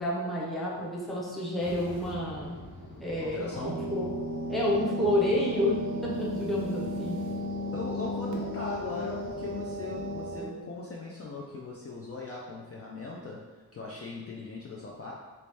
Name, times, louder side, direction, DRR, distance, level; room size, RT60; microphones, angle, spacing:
voice 1, 0.0-2.6 3.0-4.1 4.5-7.2, left 1 dB, ahead, -6 dB, 0.6 m, -29 dB
sound 1, 1.6-10.4, left 1 dB, 70° left, 0.9 m, -47 dB
voice 2, 3.3-3.9 7.7-13.4 13.7-15.1, left 3 dB, 40° left, -3 dB, 0.4 m, -39 dB
sound 2, 3.6-10.4, equal, 85° right, 0.6 m, -35 dB
3.1 x 2.8 x 3.4 m, 1.3 s
wide cardioid pair, 125°, 38 cm